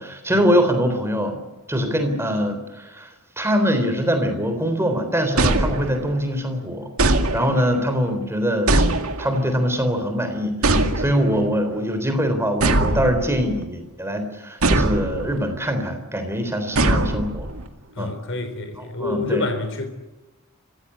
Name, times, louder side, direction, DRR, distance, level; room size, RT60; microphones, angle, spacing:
voice 1, 0.0-1.4 1.7-6.9 7.3-8.8 9.2-17.5 18.0-18.1 18.8-19.4, equal, 10° right, 3.6 m, -23 dB
sound 1, 5.4-6.3 7.0-7.8 8.7-9.5 10.6-11.4 12.6-13.6 14.6-15.4 16.8-17.7, right 2 dB, 70° right, 2.2 m, -21 dB
voice 2, 17.9-19.9, left 3 dB, 60° left, 3.9 m, -27 dB
26.5 x 16.0 x 9.9 m
head